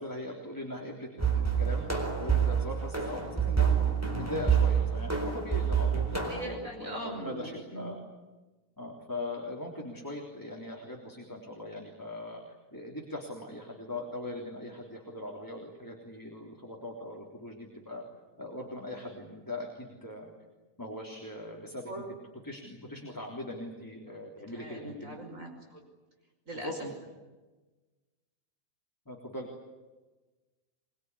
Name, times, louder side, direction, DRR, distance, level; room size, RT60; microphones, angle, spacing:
voice 1, 0.0-1.8 2.2-8.0 8.8-12.4 12.7-18.0 18.4-20.3 20.8-21.9 22.4-25.2 26.5-26.9 29.1-29.5, left 1 dB, 15° left, -1 dB, 3.5 m, -40 dB
sound 1, 1.2-6.5, right 7 dB, 10° right, 4.3 m, -27 dB
voice 2, 6.3-7.9 21.9-22.1 24.5-25.8 26.5-26.8, right 1 dB, 70° right, 2 dB, 5.9 m, -41 dB
23.5 x 23.5 x 9.8 m, 1.2 s
omnidirectional pair, 1.5 m